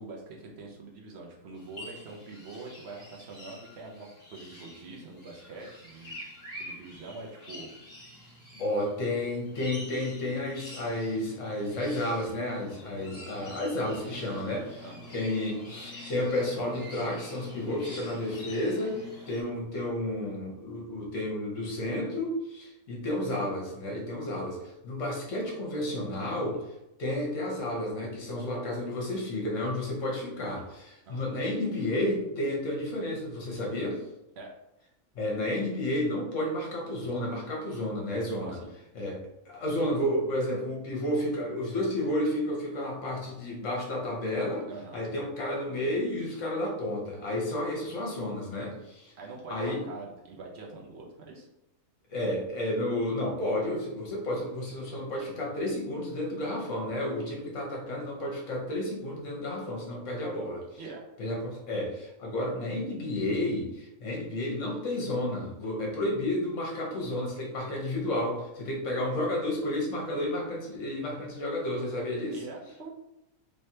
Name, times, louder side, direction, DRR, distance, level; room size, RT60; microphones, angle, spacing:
voice 1, 0.0-6.2 6.5-7.7 14.8-15.1 31.1-31.4 34.4-34.5 38.4-38.7 44.7-45.0 49.2-51.5 60.8-61.1 72.3-72.9, right 3 dB, 55° right, 0 dB, 0.9 m, -44 dB
sound 1, 1.6-19.4, left 1 dB, 30° left, 1.4 m, -46 dB
voice 2, 8.5-19.0 19.3-26.7 27.0-34.0 35.1-38.6 38.9-49.1 49.5-49.8 52.1-60.7 61.2-72.4, left 1 dB, 60° left, -1 dB, 1.3 m, -31 dB
3.2 x 3.1 x 2.8 m, 0.88 s
omnidirectional pair, 1.5 m